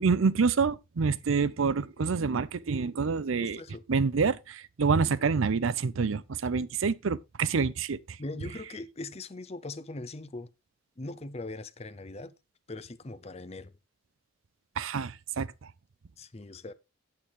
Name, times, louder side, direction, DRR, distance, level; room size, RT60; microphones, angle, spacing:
voice 1, 0.0-3.6 3.9-8.0 14.8-15.5, right 5 dB, 75° right, 0.5 m, -27 dB
voice 2, 3.4-3.8 8.2-10.5 11.0-12.3 12.7-13.7 16.2-16.7, left 2 dB, 30° left, 0.7 m, -40 dB
8.8 x 8.1 x 3.6 m
head